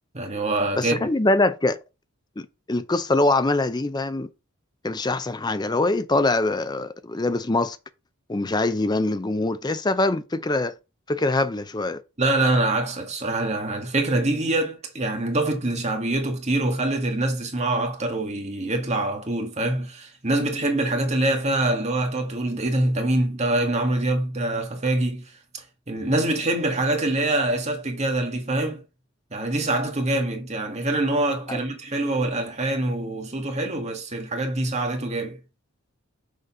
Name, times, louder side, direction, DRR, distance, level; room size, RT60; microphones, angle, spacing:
voice 1, 0.1-1.1 12.2-28.8 29.3-35.4, right 2 dB, 30° right, 1.6 m, -25 dB
voice 2, 0.8-1.8 2.4-4.3 4.8-7.8 8.3-10.7 11.1-12.0 31.5-31.6, left 2 dB, 20° left, 0.5 m, -23 dB
6.6 x 4.0 x 5.4 m
head